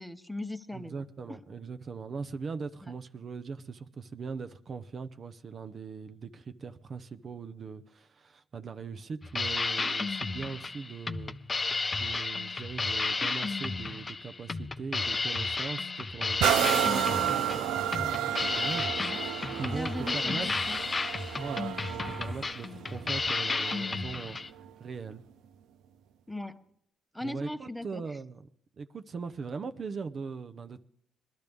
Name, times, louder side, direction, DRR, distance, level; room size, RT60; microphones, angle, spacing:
voice 1, 0.0-1.0 2.8-2.9 19.1-19.2 19.6-20.8 26.3-26.6 27.1-28.0, left 1 dB, 5° left, 0.8 m, -38 dB
voice 2, 0.7-11.4 11.9-17.0 17.5-18.9 19.5-20.7 21.4-25.2 27.2-28.5 28.8-30.8, right 5 dB, 45° right, 0.6 m, -40 dB
sound 1, 9.2-24.5, left 3 dB, 30° left, 0.6 m, -32 dB
sound 2, 16.4-24.0 24.6-24.7, right 10 dB, 90° right, 0.4 m, -31 dB
21.5 x 12.0 x 3.5 m
cardioid pair, 90°, 0 cm